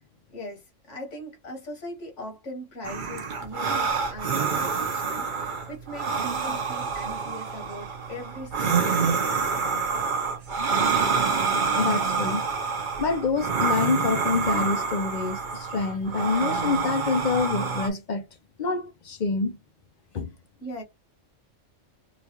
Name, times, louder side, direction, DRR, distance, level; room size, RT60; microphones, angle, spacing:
voice 1, 0.3-9.9 20.6-20.8, left 1 dB, 70° left, 1.7 m, -40 dB
sound 1, 2.8-17.9, right 5 dB, 45° right, 0.8 m, -27 dB
voice 2, 11.8-12.5 13.0-18.3 18.6-19.6 20.1-20.3, left 4 dB, 50° left, 0.6 m, -26 dB
3.9 x 2.3 x 2.9 m
omnidirectional pair, 1.3 m